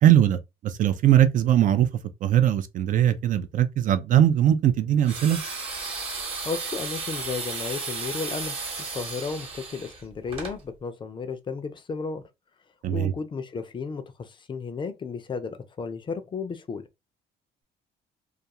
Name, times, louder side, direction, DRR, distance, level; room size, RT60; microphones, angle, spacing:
voice 1, 0.0-1.9 2.2-5.4 12.8-13.1, right 11 dB, 50° right, 0.4 m, -20 dB
sound 1, 5.0-10.6, right 4 dB, 35° right, 1.0 m, -34 dB
voice 2, 6.4-8.6 8.9-12.2 12.9-16.8, left 5 dB, 30° left, 0.4 m, -33 dB
2.3 x 2.3 x 2.8 m
cardioid pair, 110°, 17 cm